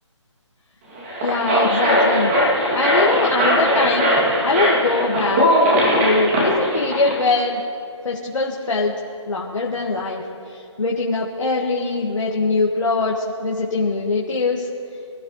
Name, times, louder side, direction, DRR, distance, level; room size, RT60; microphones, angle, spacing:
sound 1, 1.0-7.2, equal, 25° right, 2.6 m, -19 dB
voice 1, 1.2-2.3 2.7-4.1 4.4-5.5 5.9-7.6 8.0-8.9 9.3-14.7, left 3 dB, 85° left, -2 dB, 1.9 m, -22 dB
25.0 x 13.5 x 3.2 m, 2.7 s
hypercardioid pair, 160°, 16 cm